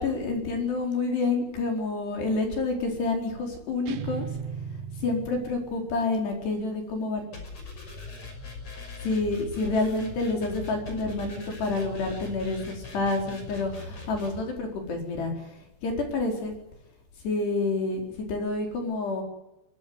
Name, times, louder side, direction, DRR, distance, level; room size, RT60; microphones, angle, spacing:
voice 1, 0.0-4.3 5.0-7.4 8.7-16.5 17.2-18.0 18.3-19.2, left 3 dB, 55° left, 3 dB, 6.3 m, -28 dB
sound 1, 3.9-5.9, right 7 dB, 75° right, 3.8 m, -36 dB
sound 2, 7.3-14.4, left 3 dB, 30° left, 6.5 m, -41 dB
22.5 x 22.0 x 9.6 m, 0.92 s
omnidirectional pair, 5.9 m